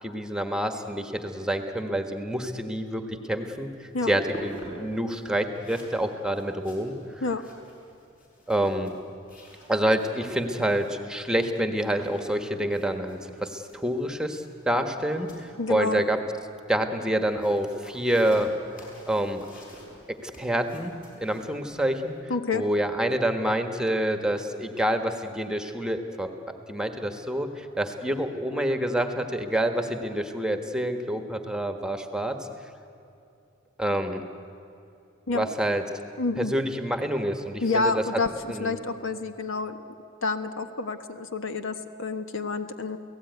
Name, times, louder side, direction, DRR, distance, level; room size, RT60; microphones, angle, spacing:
voice 1, 0.0-7.0 8.5-8.9 9.7-16.2 16.7-18.5 19.1-19.5 20.2-22.1 22.5-32.4 33.8-34.2 35.3-35.8 36.4-38.0 38.5-38.8, right 1 dB, 5° right, 6 dB, 1.4 m, -27 dB
sound 1, 3.4-22.2, right 1 dB, 45° left, 6.5 m, -49 dB
voice 2, 15.6-16.0 22.3-22.6 35.3-35.5 36.2-36.5 37.6-38.3 38.6-39.8 40.2-43.0, left 3 dB, 65° left, 8 dB, 1.3 m, -28 dB
29.0 x 17.5 x 9.4 m, 2.7 s
head